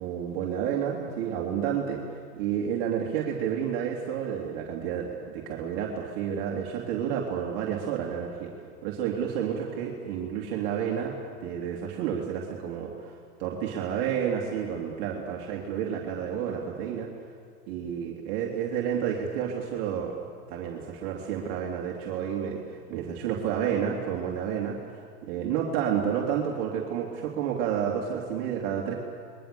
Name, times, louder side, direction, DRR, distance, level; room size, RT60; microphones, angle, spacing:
voice 1, 0.0-8.5 8.8-17.1 17.7-24.7 25.2-29.0, right 8 dB, 45° right, -1 dB, 3.1 m, -30 dB
27.5 x 22.0 x 7.0 m, 2.1 s
hypercardioid pair, 120°, 47 cm